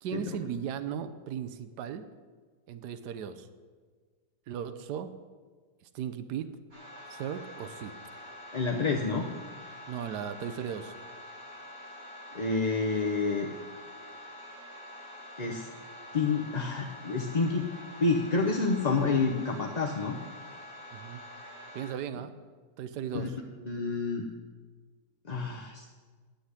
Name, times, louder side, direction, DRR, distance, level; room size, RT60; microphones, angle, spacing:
voice 1, 0.0-2.1 2.7-3.5 4.5-5.1 5.9-6.6 7.1-7.9 9.9-10.9 20.9-21.2 21.7-22.4 22.8-23.4, right 8 dB, 80° right, 11 dB, 1.4 m, -37 dB
sound 1, 6.7-21.9, left 1 dB, 55° right, 5.9 m, -46 dB
voice 2, 8.5-9.3 12.3-13.5 15.4-15.7 16.1-17.6 18.0-20.2 23.1-23.3 23.6-24.3 25.3-25.9, left 4 dB, 35° left, 1 dB, 0.7 m, -28 dB
10.5 x 8.3 x 9.7 m, 1.5 s
omnidirectional pair, 1.8 m